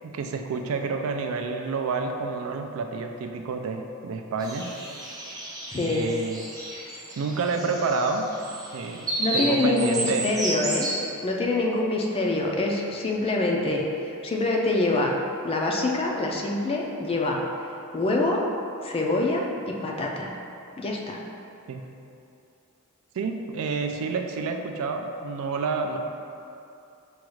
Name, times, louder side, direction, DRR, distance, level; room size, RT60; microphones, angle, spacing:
voice 1, 0.0-4.7 5.7-6.5 7.2-8.3 8.7-9.0 9.3-10.3 21.7-21.8 23.1-26.0, right 4 dB, 70° right, 5 dB, 0.3 m, -29 dB
sound 1, 4.4-11.0, right 2 dB, 15° right, 0.6 m, -33 dB
voice 2, 5.7-6.1 9.2-10.9 11.2-15.1 15.4-17.4 17.9-18.4 18.8-20.3 20.8-21.2, left 2 dB, 25° left, 0 dB, 0.3 m, -25 dB
6.1 x 2.3 x 3.0 m, 2.6 s
head